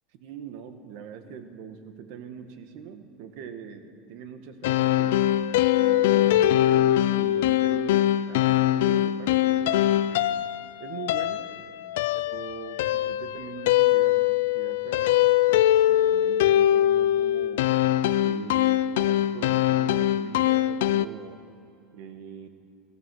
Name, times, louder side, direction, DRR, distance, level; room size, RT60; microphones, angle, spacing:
voice 1, 0.1-5.3 5.7-10.4 10.8-11.5 12.1-17.6 18.2-21.4 21.9-22.5, right 7 dB, 70° right, 8 dB, 1.4 m, -42 dB
sound 1, 4.6-21.1, left 13 dB, 80° left, 0.4 m, -22 dB
15.5 x 14.5 x 6.3 m, 2.5 s
supercardioid pair, 110°, 0 cm